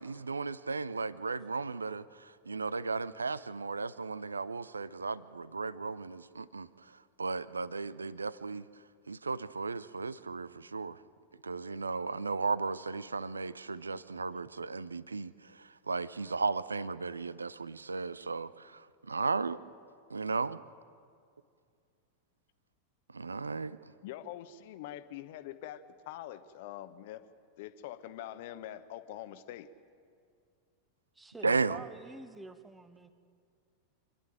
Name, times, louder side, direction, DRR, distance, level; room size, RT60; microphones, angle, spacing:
voice 1, 0.0-2.1 2.5-6.7 7.2-8.6 9.1-11.0 11.4-15.3 15.6-18.8 19.1-19.6 20.1-20.6 23.1-23.8 31.4-31.8, right 4 dB, 75° right, 18 dB, 0.5 m, -35 dB
voice 2, 24.0-27.2 27.6-29.7, left 12 dB, 50° left, 12 dB, 1.0 m, -44 dB
voice 3, 31.1-33.1, right 2 dB, 10° right, 10 dB, 1.1 m, -48 dB
26.5 x 11.0 x 8.9 m, 2.3 s
figure-of-eight pair, 90°, 0 cm